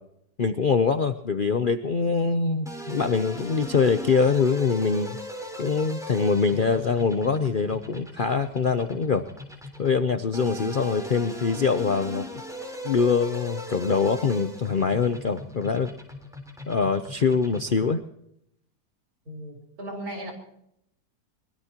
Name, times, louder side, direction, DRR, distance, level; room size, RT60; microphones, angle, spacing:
voice 1, 0.4-5.2 5.6-9.3 9.8-12.3 12.8-15.9 16.7-18.0, left 5 dB, 55° left, 9 dB, 0.5 m, -24 dB
sound 1, 2.7-18.0, equal, ahead, 3.6 m, -39 dB
voice 2, 19.3-20.3, right 1 dB, 60° right, 1 dB, 4.7 m, -36 dB
23.0 x 20.5 x 2.9 m, 0.76 s
omnidirectional pair, 1.8 m